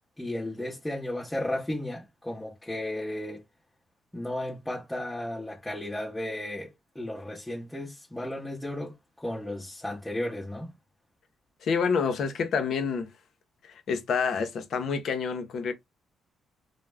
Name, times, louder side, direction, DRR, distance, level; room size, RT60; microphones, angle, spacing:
voice 1, 0.2-3.4 4.1-10.7, left 1 dB, 10° left, 0.7 m, -34 dB
voice 2, 11.6-13.1 13.7-15.7, left 5 dB, 65° left, 0.6 m, -28 dB
2.3 x 2.0 x 3.3 m
cardioid pair, 90°, 0 cm